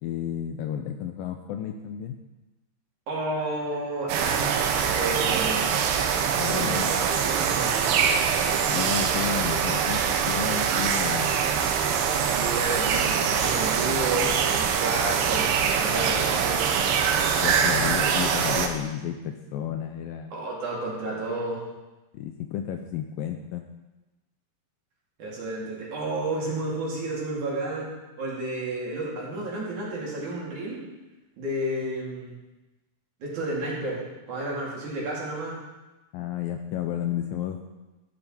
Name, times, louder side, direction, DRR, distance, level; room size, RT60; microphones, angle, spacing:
voice 1, 0.0-2.2 6.3-6.9 8.7-11.3 17.4-20.3 22.1-23.7 36.1-37.6, left 9 dB, 90° left, 6 dB, 2.1 m, -32 dB
voice 2, 3.1-5.6 6.5-7.8 12.3-16.6 20.3-21.6 25.2-30.8 31.4-32.3 33.2-35.6, right 2 dB, 50° right, -5 dB, 3.7 m, -31 dB
sound 1, 4.1-18.7, right 7 dB, 80° right, 2.9 m, -24 dB
14.0 x 8.7 x 4.4 m, 1.1 s
omnidirectional pair, 4.7 m